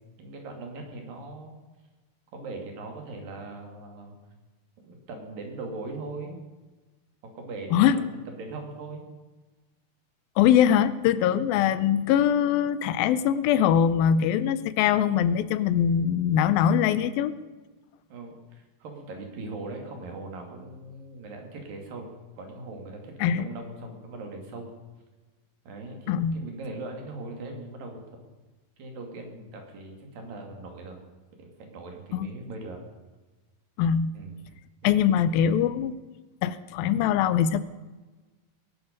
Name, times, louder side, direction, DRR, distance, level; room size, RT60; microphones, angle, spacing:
voice 1, 0.2-1.6 2.3-4.2 4.8-6.4 7.2-9.1 11.2-11.4 18.1-22.1 22.4-24.7 25.7-28.0 28.8-31.0 31.4-32.8 34.1-34.3 34.8-35.0, right 2 dB, 75° right, 3 dB, 4.3 m, -40 dB
voice 2, 10.4-17.3 23.2-23.4 26.1-26.4 32.1-32.3 33.8-34.1 34.8-35.9 36.4-37.6, left 9 dB, 85° left, 14 dB, 2.6 m, -22 dB
20.0 x 12.0 x 5.3 m, 1.2 s
omnidirectional pair, 4.1 m